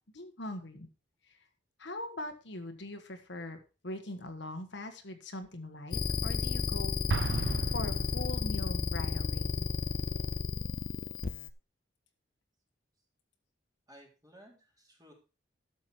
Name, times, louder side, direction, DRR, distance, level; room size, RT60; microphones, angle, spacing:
voice 1, 0.1-0.9 1.3-1.4 1.8-7.0 7.7-9.7, left 1 dB, 65° left, 6 dB, 1.5 m, -41 dB
sound 1, 5.9-11.5, left 4 dB, 45° left, 0.7 m, -32 dB
Explosion, 7.1-8.8, right 4 dB, 70° right, 0.6 m, -35 dB
voice 2, 13.9-15.1, equal, 20° right, 0 dB, 3.7 m, -56 dB
12.5 x 7.3 x 4.5 m, 0.32 s
head